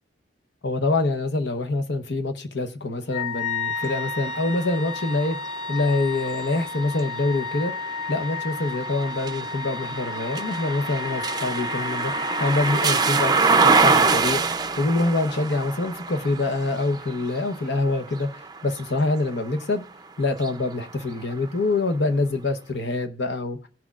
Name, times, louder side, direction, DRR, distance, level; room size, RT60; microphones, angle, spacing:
voice 1, 0.6-5.4 5.7-18.3 18.6-19.8 20.2-23.6, left 2 dB, 70° left, 0.9 m, -25 dB
Wind instrument woodwind instrument, 3.1-13.9, left 5 dB, 45° left, 4.2 m, -33 dB
sound 1, 3.8-19.7 20.3-21.5, right 4 dB, 20° right, 0.5 m, -26 dB
17.0 x 6.0 x 2.4 m
head